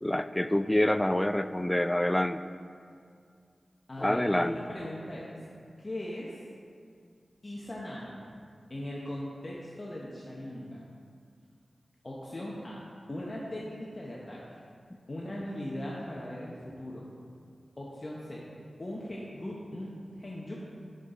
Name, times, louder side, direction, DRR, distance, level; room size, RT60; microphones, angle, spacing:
voice 1, 0.0-2.4 4.0-4.6, left 1 dB, 15° left, 12 dB, 0.3 m, -26 dB
voice 2, 3.9-5.4 5.8-6.3 7.4-8.1 8.7-10.8 12.0-12.8 13.1-14.4 15.1-17.0 17.8-18.5 18.8-20.5, left 1 dB, 45° left, -5 dB, 0.9 m, -39 dB
6.5 x 6.5 x 3.8 m, 2.2 s
cardioid pair, 40°, 0 cm